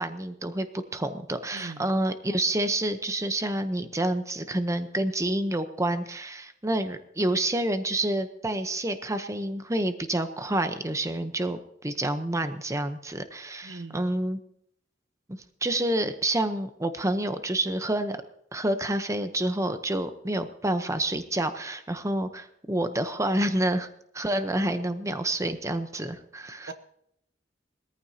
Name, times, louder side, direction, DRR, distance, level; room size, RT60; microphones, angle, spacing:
voice 1, 0.0-14.4 15.3-18.2 18.5-23.9 24.1-26.7, right 1 dB, 15° right, 9 dB, 0.8 m, -28 dB
voice 2, 1.5-1.9 13.6-14.1 26.7-26.8, right 3 dB, 80° right, 9 dB, 1.0 m, -41 dB
21.0 x 14.0 x 2.8 m, 0.72 s
head